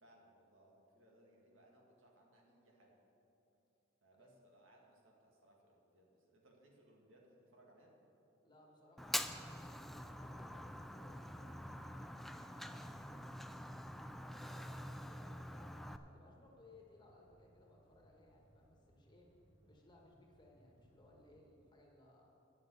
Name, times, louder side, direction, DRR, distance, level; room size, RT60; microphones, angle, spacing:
voice 1, 0.0-3.0 4.0-7.9 14.5-14.8, right 1 dB, 80° right, -1 dB, 2.1 m, -67 dB
voice 2, 8.4-12.8 14.2-19.3 19.6-22.3, left 2 dB, 25° left, -1 dB, 1.6 m, -64 dB
Fire, 9.0-16.0, equal, ahead, 0.3 m, -45 dB
sound 1, 16.3-21.4, equal, 75° left, 1.7 m, -70 dB
10.5 x 7.2 x 8.0 m, 2.8 s
head